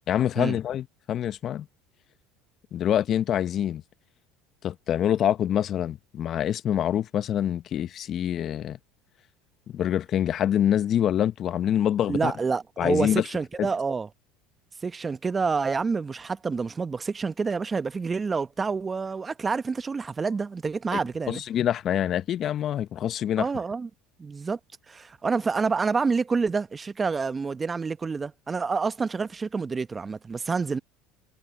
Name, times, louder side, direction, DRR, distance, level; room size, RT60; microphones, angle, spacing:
voice 1, 0.1-1.7 2.7-3.8 4.6-8.8 9.7-12.3 12.8-13.2 13.6-13.7 20.9-21.0 21.3-23.5, left 10 dB, 45° left, 1.1 m, -25 dB
voice 2, 12.1-14.1 14.8-21.4 23.4-23.9 24.2-24.6 24.9-30.8, right 4 dB, 25° right, 1.0 m, -28 dB
hypercardioid pair, 80°, 0 cm